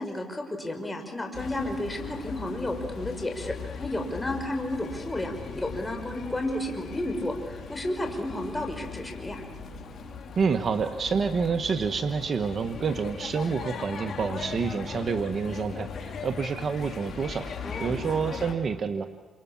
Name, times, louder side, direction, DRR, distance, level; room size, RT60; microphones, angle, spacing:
voice 1, 0.0-9.4 17.6-18.3, left 1 dB, 15° left, 4 dB, 5.4 m, -32 dB
sound 1, 1.3-18.5, left 6 dB, 60° left, 5.0 m, -39 dB
voice 2, 10.4-17.5 17.8-19.1, right 5 dB, 50° right, 8 dB, 1.5 m, -28 dB
29.0 x 27.5 x 7.3 m, 1.4 s
cardioid pair, 80°, 0 cm